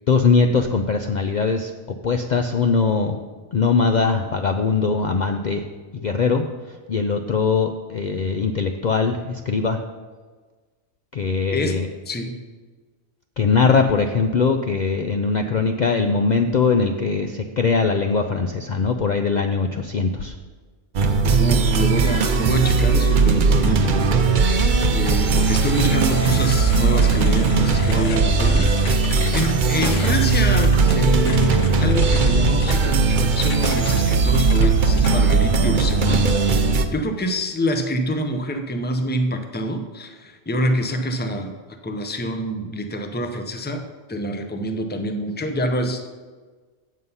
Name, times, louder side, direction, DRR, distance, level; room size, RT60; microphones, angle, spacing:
voice 1, 0.1-1.7 2.0-3.2 3.5-5.6 6.0-9.8 11.1-11.9 13.4-20.3, left 4 dB, 85° left, 5 dB, 0.4 m, -21 dB
voice 2, 12.1-12.4 13.6-13.7 21.4-24.6 24.9-41.6 41.8-46.1, equal, 15° left, 6 dB, 0.4 m, -26 dB
sound 1, 20.9-36.8, right 4 dB, 50° right, 0.6 m, -18 dB
sound 2, 25.3-35.5, left 6 dB, 65° left, 1.1 m, -36 dB
8.0 x 7.4 x 5.5 m, 1.4 s
omnidirectional pair, 1.4 m